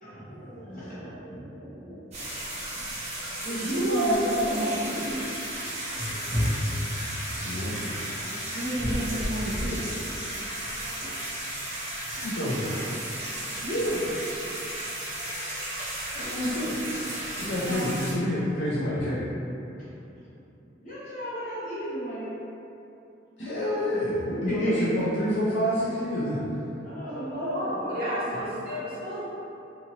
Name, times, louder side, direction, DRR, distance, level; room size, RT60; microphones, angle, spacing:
voice 1, 0.0-2.3 2.7-2.9 3.4-5.1 7.5-10.1 11.0-11.2 12.1-12.2 12.6-13.0 13.6-14.3 17.7-17.9 20.6-22.4 23.4-23.6 24.5-24.9 26.8-27.9, right 1 dB, 45° left, -9 dB, 0.9 m, -34 dB
sound 1, 2.1-18.1, right 1 dB, 35° right, 0.6 m, -33 dB
voice 2, 3.5-5.2 27.5-29.3, right 1 dB, 55° right, -10 dB, 1.0 m, -29 dB
voice 3, 7.4-7.8 12.2-12.7 16.1-16.8 17.4-19.3 23.4-26.4, left 1 dB, 60° left, -8 dB, 0.5 m, -28 dB
2.7 x 2.6 x 2.8 m, 2.8 s
head